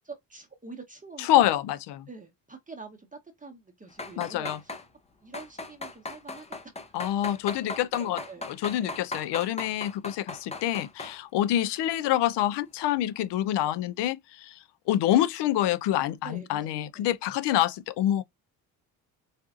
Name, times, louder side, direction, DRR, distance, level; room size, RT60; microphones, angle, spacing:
voice 1, 0.0-1.5 2.1-4.8 5.2-6.9 7.6-8.5 8.8-9.0 11.3-11.6 16.2-17.1, right 4 dB, 20° right, 0.9 m, -46 dB
voice 2, 1.2-2.1 4.2-4.6 6.9-8.2 8.5-14.6 14.9-18.2, left 12 dB, 85° left, 0.5 m, -26 dB
sound 1, 3.9-4.8 5.3-11.2 11.6-11.9 12.3-12.4, left 2 dB, 15° left, 0.6 m, -38 dB
4.2 x 2.4 x 2.4 m
cardioid pair, 80°, 40 cm